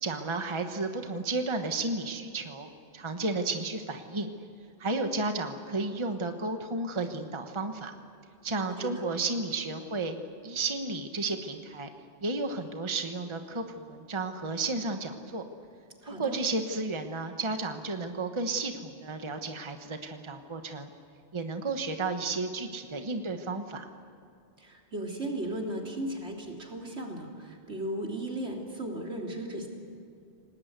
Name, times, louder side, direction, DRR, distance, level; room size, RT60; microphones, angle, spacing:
voice 1, 0.0-4.3 4.8-7.9 8.4-10.2 10.4-11.9 12.2-15.4 16.1-20.9 21.3-23.9, right 3 dB, 25° right, 6 dB, 1.3 m, -32 dB
voice 2, 16.0-16.4 24.6-29.7, right 1 dB, 75° right, 0 dB, 3.7 m, -36 dB
28.5 x 19.0 x 8.2 m, 2.5 s
omnidirectional pair, 1.1 m